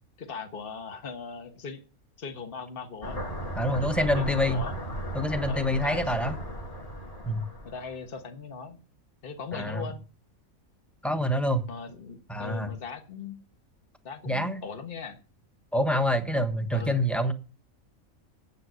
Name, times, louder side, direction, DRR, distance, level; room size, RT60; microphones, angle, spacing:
voice 1, 0.2-1.8 2.2-3.2 3.7-4.8 5.5-6.2 7.6-8.8 9.2-10.0 11.7-13.4 14.0-15.2 16.7-17.0, left 5 dB, 40° left, 6 dB, 1.5 m, -39 dB
sound 1, 3.0-8.0, equal, 25° left, 1.9 m, -36 dB
voice 2, 3.6-4.7 5.1-6.3 7.3-7.4 9.5-9.8 11.0-11.6 12.3-12.7 14.3-14.6 15.7-17.3, equal, ahead, 7 dB, 1.0 m, -26 dB
9.6 x 8.0 x 6.3 m, 0.35 s
omnidirectional pair, 1.4 m